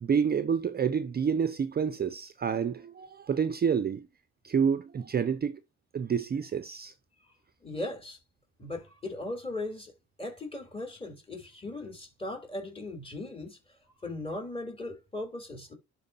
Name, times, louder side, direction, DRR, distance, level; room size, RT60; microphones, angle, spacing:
voice 1, 0.0-4.1 4.4-5.6 5.9-6.9, right 7 dB, 30° right, 0.5 m, -28 dB
voice 2, 7.6-8.2 8.6-9.9 10.2-13.6 14.0-15.7, left 2 dB, 20° left, 3.4 m, -38 dB
12.0 x 4.6 x 2.8 m
cardioid pair, 90°, 30 cm